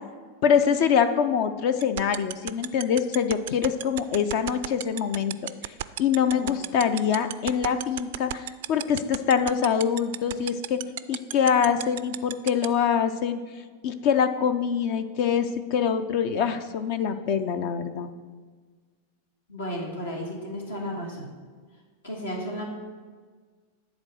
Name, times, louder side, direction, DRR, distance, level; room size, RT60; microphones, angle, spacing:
voice 1, 0.4-10.8 11.1-13.4 13.8-18.1, left 7 dB, 45° left, 10 dB, 0.5 m, -24 dB
sound 1, 1.8-12.7, right 16 dB, 55° right, 0.3 m, -31 dB
voice 2, 6.3-6.9 19.5-21.3 22.0-22.6, equal, 70° left, -1 dB, 1.9 m, -34 dB
10.5 x 4.1 x 6.3 m, 1.5 s
figure-of-eight pair, 90°, 0 cm